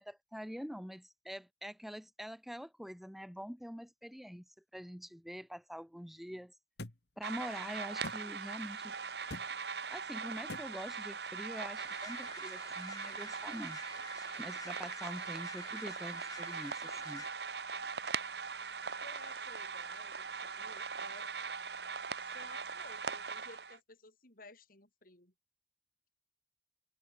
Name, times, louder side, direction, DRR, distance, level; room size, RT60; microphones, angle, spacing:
voice 1, 0.0-4.4 4.7-6.5 7.2-8.9 9.6-13.8 14.4-17.2, equal, ahead, 1.2 m, -45 dB
sound 1, 6.8-7.0 8.0-8.2 9.3-9.5 10.5-10.7, left 2 dB, 70° left, 1.8 m, -43 dB
sound 2, 7.2-23.8, right 5 dB, 65° right, 1.8 m, -41 dB
sound 3, 11.8-17.3, left 4 dB, 20° left, 1.0 m, -52 dB
voice 2, 19.0-21.3 22.2-25.3, left 2 dB, 55° left, 6.3 m, -56 dB
head